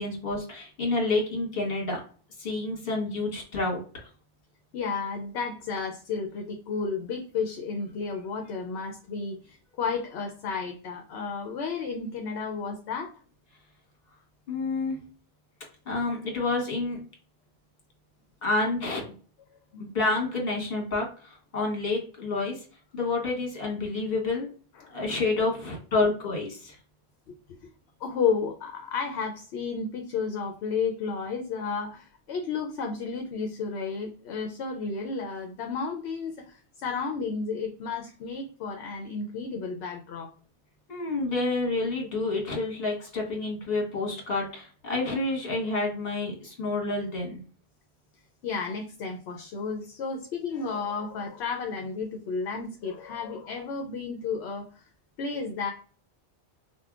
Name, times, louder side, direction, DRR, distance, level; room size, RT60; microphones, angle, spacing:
voice 1, 0.0-2.0 2.4-3.8 14.5-15.0 15.9-17.0 18.4-19.1 19.8-22.6 22.9-24.5 24.9-26.7 40.9-47.4, left 3 dB, 60° left, 0 dB, 1.5 m, -29 dB
voice 2, 4.7-13.1 19.7-19.8 24.8-24.9 27.3-27.4 28.0-40.3 48.4-54.8 55.2-55.7, left 5 dB, 75° left, 3 dB, 0.8 m, -32 dB
5.3 x 2.1 x 2.3 m, 0.41 s
omnidirectional pair, 1.2 m